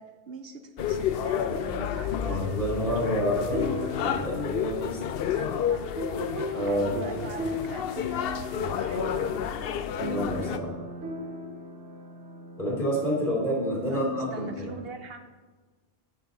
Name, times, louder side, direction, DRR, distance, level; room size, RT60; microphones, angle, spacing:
voice 1, 0.0-2.4 5.3-5.9 6.6-9.6 13.9-15.3, right 4 dB, 65° right, 7 dB, 0.8 m, -42 dB
sound 1, 0.8-10.6, left 9 dB, 65° left, 0.7 m, -31 dB
voice 2, 2.2-5.0 5.5-5.6 6.5-6.9 10.0-10.7 12.6-14.6, equal, 50° left, -5 dB, 3.2 m, -29 dB
sound 2, 3.5-14.7, left 2 dB, 85° right, 1.3 m, -37 dB
10.5 x 6.9 x 4.1 m, 1.4 s
omnidirectional pair, 1.2 m